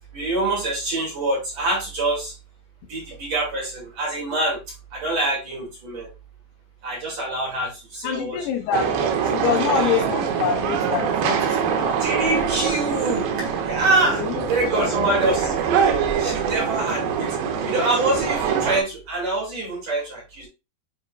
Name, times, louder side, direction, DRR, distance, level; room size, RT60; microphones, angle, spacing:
voice 1, 0.1-2.4 2.9-4.6 4.9-6.1 6.8-8.5 9.5-10.0 12.0-14.2 14.5-17.3 17.6-20.5, right 2 dB, 45° right, -4 dB, 3.1 m, -25 dB
voice 2, 8.0-8.9 9.2-12.0 14.1-14.4 14.7-15.1, left 7 dB, 75° left, 4 dB, 2.9 m, -26 dB
sound 1, 8.7-18.8, right 7 dB, 85° right, 3.1 m, -24 dB
9.6 x 4.4 x 2.4 m, 0.27 s
omnidirectional pair, 5.0 m